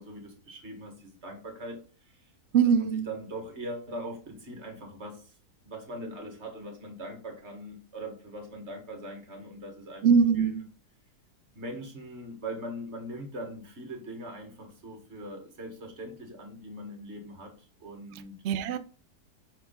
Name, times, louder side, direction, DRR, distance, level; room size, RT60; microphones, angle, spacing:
voice 1, 0.0-2.3 2.8-5.3 5.6-10.0 10.4-10.6 11.5-18.4, right 1 dB, 45° right, 1.7 m, -41 dB
voice 2, 2.5-3.1 10.0-10.6 18.4-18.8, right 6 dB, 65° right, 0.7 m, -22 dB
5.6 x 4.7 x 3.8 m
omnidirectional pair, 1.7 m